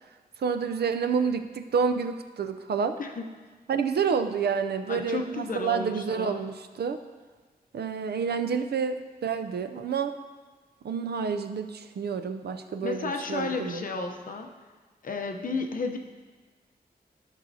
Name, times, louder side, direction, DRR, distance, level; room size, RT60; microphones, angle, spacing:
voice 1, 0.4-3.0 3.7-7.0 7.7-10.1 10.8-13.8, right 6 dB, 85° right, 9 dB, 0.5 m, -29 dB
voice 2, 4.9-6.5 12.8-14.5 15.0-16.0, left 3 dB, 60° left, 3 dB, 0.8 m, -32 dB
13.0 x 6.2 x 2.7 m, 1.4 s
wide cardioid pair, 145°, 16 cm